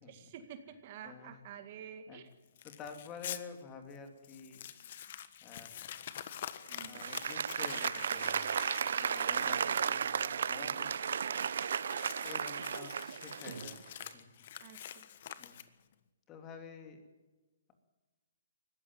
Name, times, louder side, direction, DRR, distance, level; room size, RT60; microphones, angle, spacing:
voice 1, 0.1-2.3 6.7-7.0 10.5-10.9 11.9-12.0 14.6-14.8, right 8 dB, 40° right, 9 dB, 2.0 m, -49 dB
voice 2, 1.0-1.4 2.1-2.2 2.6-4.7 5.4-5.9 6.8-8.6 8.9-11.2 12.2-14.3 15.4-15.6 16.3-17.0, left 6 dB, 20° left, 6 dB, 2.8 m, -50 dB
Crumpling crinkling, 2.6-3.4 3.9-4.0 4.2-15.9, left 10 dB, 50° left, 1.4 m, -47 dB
Applause, 6.8-13.8, right 7 dB, 65° right, 0.8 m, -34 dB
20.0 x 15.5 x 9.5 m, 1.2 s
hypercardioid pair, 150°, 0 cm